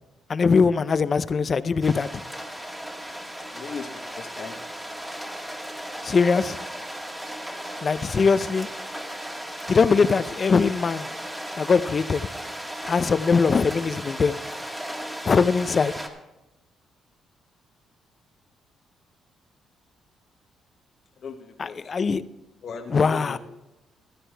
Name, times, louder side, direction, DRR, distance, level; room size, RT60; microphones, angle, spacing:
voice 1, 0.3-2.2 6.0-6.6 7.8-8.7 9.7-11.1 11.6-12.2 12.9-14.4 15.2-15.9 21.6-22.2 22.9-23.4, left 5 dB, 40° left, 0.5 m, -21 dB
sound 1, 1.8-16.1, equal, 10° right, 1.7 m, -36 dB
voice 2, 3.1-5.5 7.9-8.2 12.8-12.9 21.2-21.9 22.6-23.4, left 5 dB, 55° left, 1.0 m, -40 dB
14.5 x 12.0 x 3.4 m
cardioid pair, 90°, 0 cm